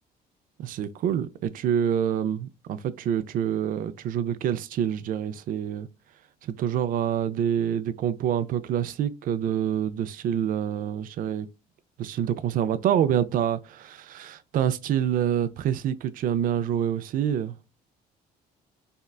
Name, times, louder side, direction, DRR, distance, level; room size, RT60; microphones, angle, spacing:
voice 1, 0.6-5.9 6.4-11.5 12.0-17.5, right 9 dB, 55° right, 0.4 m, -27 dB
3.6 x 2.2 x 2.2 m
cardioid pair, 110°, 17 cm